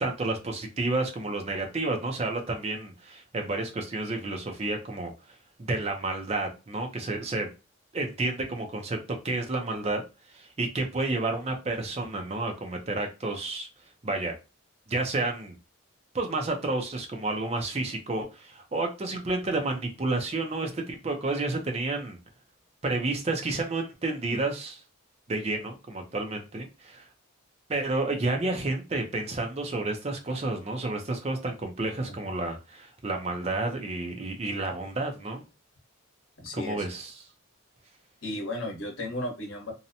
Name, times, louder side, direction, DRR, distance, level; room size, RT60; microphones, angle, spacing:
voice 1, 0.0-5.1 5.6-7.5 7.9-9.0 9.2-10.0 10.3-13.7 14.0-14.3 14.9-15.6 16.1-22.2 22.8-24.8 25.3-27.1 27.7-35.5 36.5-37.1, right 2 dB, 30° right, 0.5 m, -30 dB
voice 2, 36.4-36.8 38.2-39.7, left 1 dB, 65° left, 1.0 m, -35 dB
2.7 x 2.1 x 2.6 m
head